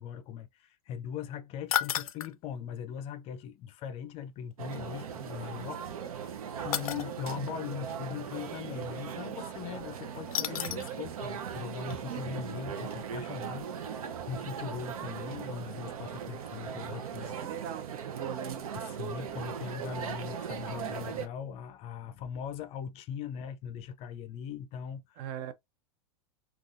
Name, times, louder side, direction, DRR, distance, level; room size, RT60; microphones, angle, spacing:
voice 1, 0.0-6.3 6.6-17.4 18.7-25.3, left 8 dB, 35° left, 0.4 m, -40 dB
sound 1, 1.7-2.3 4.7-4.8 6.7-7.1 10.3-11.0 11.4-11.5 11.9-12.0, left 11 dB, 90° left, 0.4 m, -32 dB
sound 2, 4.6-21.3, right 8 dB, 90° right, 0.6 m, -39 dB
voice 2, 17.2-18.7 25.2-25.5, right 9 dB, 50° right, 0.6 m, -40 dB
3.7 x 2.4 x 2.5 m
hypercardioid pair, 125°, 18 cm